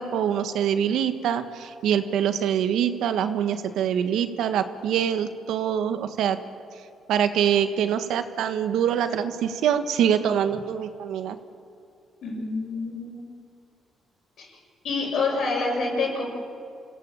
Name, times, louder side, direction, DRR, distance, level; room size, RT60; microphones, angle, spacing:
voice 1, 0.0-6.4 7.1-11.4, right 9 dB, 80° right, 9 dB, 1.4 m, -24 dB
voice 2, 12.2-13.3 14.4-14.5 14.8-16.3, left 3 dB, 70° left, -1 dB, 7.8 m, -27 dB
27.0 x 17.0 x 8.9 m, 2.5 s
cardioid pair, 90°, 0 cm